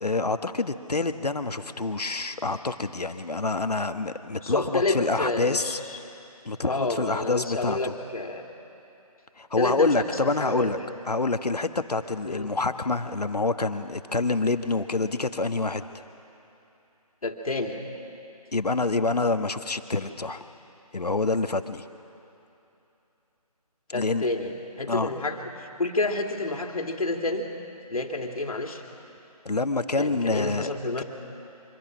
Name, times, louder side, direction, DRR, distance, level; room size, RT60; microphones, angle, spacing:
voice 1, 0.0-5.8 6.4-7.9 9.4-10.8 11.1-15.9 18.5-20.4 20.9-21.8 23.9-24.3 24.9-25.1 29.4-30.7 31.0-31.1, left 3 dB, 80° left, 9 dB, 1.3 m, -27 dB
voice 2, 4.4-6.0 6.6-8.4 9.6-10.9 12.2-12.5 17.2-17.8 23.9-27.5 27.9-28.8 30.0-31.0, left 2 dB, 65° left, 3 dB, 2.5 m, -29 dB
25.5 x 25.0 x 6.2 m, 2.9 s
figure-of-eight pair, 160°, 20 cm